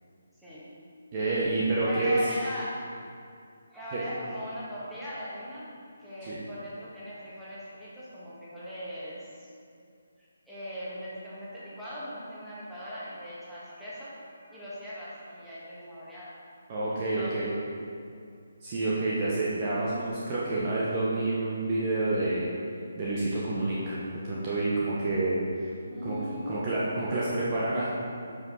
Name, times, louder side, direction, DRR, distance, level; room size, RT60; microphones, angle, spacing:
voice 1, 0.4-0.7 1.9-2.8 3.7-9.5 10.2-16.3 16.9-17.4 25.9-26.6, equal, ahead, -12 dB, 1.9 m, -39 dB
voice 2, 1.1-2.2 3.9-4.0 6.3-6.4 16.7-17.5 18.6-22.5 23.0-23.9 24.2-25.7 26.0-26.2 26.5-27.9, right 2 dB, 30° right, -7 dB, 1.2 m, -28 dB
9.1 x 5.6 x 4.2 m, 2.4 s
figure-of-eight pair, 145°, 0 cm